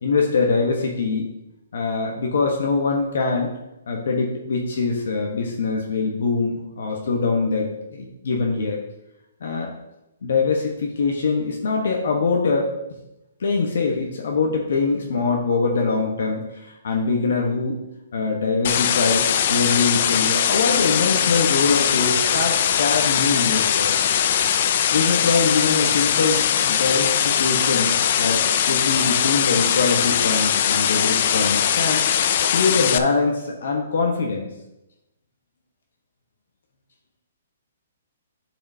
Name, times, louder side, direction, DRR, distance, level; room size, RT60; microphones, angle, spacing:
voice 1, 0.0-1.3 1.7-3.6 3.9-8.8 9.4-9.7 10.2-12.7 13.4-17.8 18.1-23.9 24.9-32.0 32.5-34.5, left 4 dB, 65° left, 1 dB, 1.1 m, -23 dB
sound 1, 18.6-33.0, left 9 dB, 35° left, 0.3 m, -20 dB
11.0 x 4.9 x 2.8 m, 0.91 s
hypercardioid pair, 175°, 0 cm